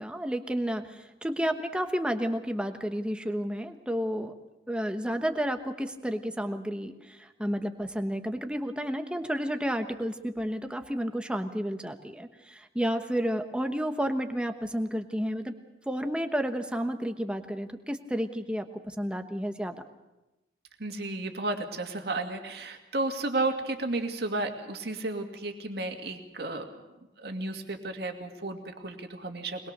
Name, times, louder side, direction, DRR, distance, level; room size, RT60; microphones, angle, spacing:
voice 1, 0.0-4.3 4.7-15.5 15.9-19.7, equal, 5° right, 6 dB, 1.2 m, -31 dB
voice 2, 20.8-26.8 27.2-29.7, right 2 dB, 65° right, 4 dB, 2.3 m, -33 dB
22.5 x 21.0 x 6.7 m, 1.0 s
head